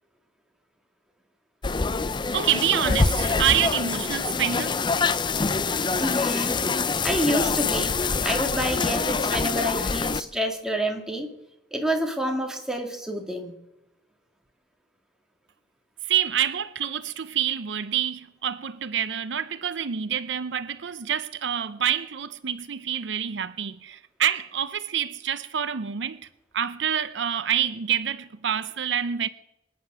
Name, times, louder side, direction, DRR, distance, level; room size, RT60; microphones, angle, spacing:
sound 1, 1.6-10.2, left 4 dB, 25° left, 0.5 m, -25 dB
voice 1, 2.3-4.8 16.0-26.3 26.5-29.3, right 9 dB, 75° right, 0.6 m, -27 dB
voice 2, 5.9-6.6 7.0-8.0 8.2-11.3 11.7-13.5, equal, 5° right, 2.1 m, -28 dB
25.0 x 9.4 x 6.1 m
head